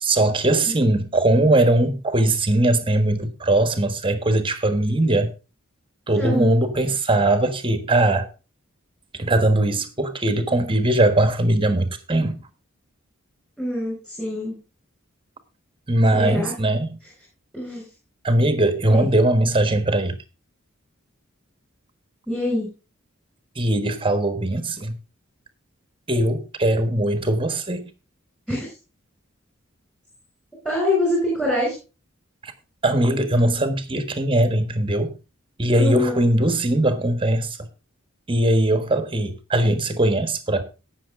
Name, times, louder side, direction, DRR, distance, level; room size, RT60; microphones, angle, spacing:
voice 1, 0.0-5.3 6.1-8.3 9.2-12.4 15.9-17.0 18.2-20.2 23.5-25.0 26.1-27.9 32.4-32.5 32.8-35.1 35.6-37.7 38.3-40.6, right 1 dB, 25° right, 1.4 m, -20 dB
voice 2, 6.2-6.6 13.6-14.5 16.1-16.5 17.5-17.9 18.9-19.1 22.3-22.7 28.5-28.7 30.6-31.7 35.8-36.1, left 1 dB, 5° left, 5.7 m, -24 dB
18.0 x 6.6 x 3.7 m
head